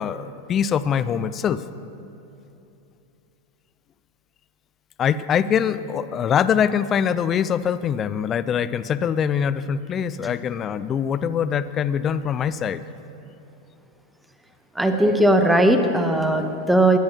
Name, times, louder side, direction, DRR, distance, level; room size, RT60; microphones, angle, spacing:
voice 1, 0.0-1.6 5.0-12.8, left 8 dB, 25° left, 14 dB, 0.4 m, -23 dB
voice 2, 14.8-17.0, right 1 dB, 5° right, 7 dB, 0.8 m, -18 dB
21.5 x 10.5 x 2.9 m, 2.8 s
figure-of-eight pair, 90°, 0 cm